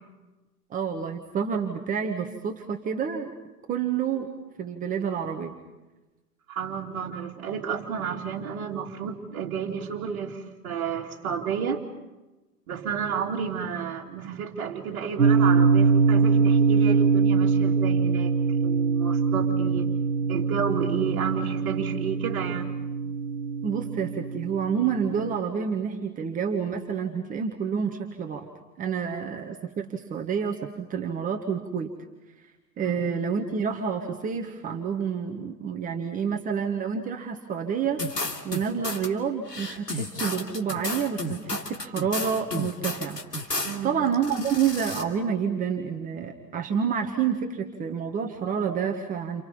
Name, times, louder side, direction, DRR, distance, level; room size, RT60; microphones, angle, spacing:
voice 1, 0.7-3.3 3.7-4.3 4.6-5.5 23.6-28.5 28.8-31.9 32.8-38.0 38.4-43.2 43.5-49.4, right 7 dB, 15° right, 3 dB, 1.6 m, -28 dB
voice 2, 6.5-11.8 12.7-19.9 20.3-22.7 32.8-33.1 43.6-44.0, right 7 dB, 40° right, -4 dB, 2.7 m, -31 dB
sound 1, 15.2-25.4, right 5 dB, 80° right, 1.0 m, -23 dB
sound 2, 38.0-39.1 39.5-43.8 44.1-45.0, left 2 dB, 85° left, 2.8 m, -32 dB
29.5 x 28.5 x 5.6 m, 1.1 s
figure-of-eight pair, 110°, 48 cm